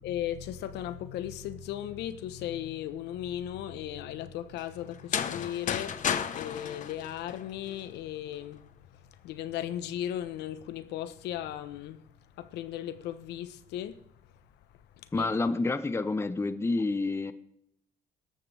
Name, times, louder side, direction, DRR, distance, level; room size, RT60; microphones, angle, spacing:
voice 1, 0.0-8.9 9.2-12.0 12.4-14.0 15.2-15.3, left 11 dB, 85° left, 1.1 m, -36 dB
sound 1, 4.9-7.8, left 8 dB, 50° left, 1.1 m, -33 dB
voice 2, 15.1-17.3, left 3 dB, 15° left, 0.8 m, -28 dB
17.5 x 13.5 x 3.5 m
cardioid pair, 110°, 17 cm